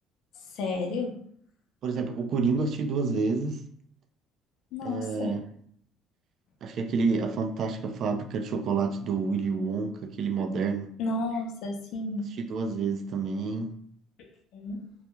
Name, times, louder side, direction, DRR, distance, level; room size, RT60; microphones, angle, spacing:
voice 1, 0.5-1.1 4.7-5.3 11.0-12.3 14.5-14.8, left 3 dB, 70° left, 0.5 m, -31 dB
voice 2, 1.8-3.6 4.8-5.4 6.6-10.9 12.4-13.7, right 4 dB, 50° right, 0.3 m, -29 dB
2.3 x 2.1 x 2.9 m
cardioid pair, 125°, 0 cm